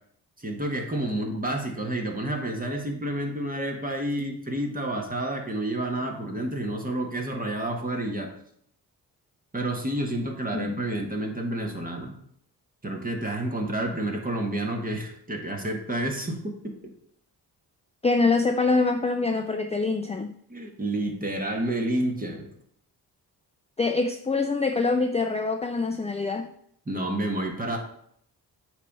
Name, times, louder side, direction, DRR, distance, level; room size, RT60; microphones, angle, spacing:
voice 1, 0.4-8.3 9.5-12.1 12.8-16.9 20.5-22.5 26.9-27.8, right 1 dB, 20° right, 1 dB, 1.7 m, -29 dB
voice 2, 18.0-20.3 23.8-26.5, left 3 dB, 15° left, 6 dB, 0.5 m, -25 dB
8.0 x 3.3 x 5.5 m, 0.68 s
cardioid pair, 75°, 39 cm